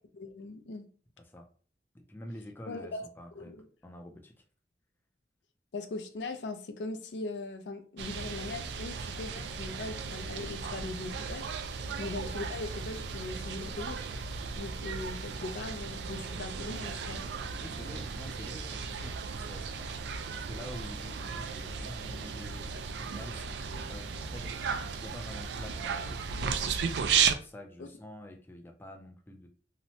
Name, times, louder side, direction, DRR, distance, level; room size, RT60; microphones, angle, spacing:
voice 1, 0.1-0.8 2.7-3.0 3.4-3.7 5.7-11.5 12.0-14.0 14.5-17.2 27.8-27.9, left 2 dB, 80° left, 0.4 m, -40 dB
voice 2, 1.9-3.5 3.8-4.3 11.9-12.0 17.6-22.7 23.0-29.5, left 1 dB, 10° left, 0.3 m, -47 dB
sound 1, 8.0-27.3, right 6 dB, 70° right, 0.3 m, -35 dB
2.8 x 2.1 x 2.7 m
head